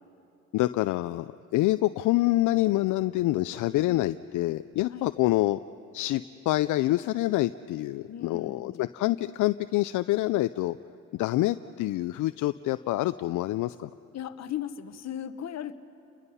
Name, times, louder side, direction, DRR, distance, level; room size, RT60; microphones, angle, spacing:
voice 1, 0.5-5.6 5.9-10.8 11.1-13.9, left 16 dB, 80° left, 13 dB, 0.5 m, -26 dB
voice 2, 4.8-5.1 8.1-8.9 14.1-15.7, left 10 dB, 60° left, 11 dB, 1.0 m, -37 dB
30.0 x 22.0 x 5.6 m, 2.8 s
cardioid pair, 90°, 30 cm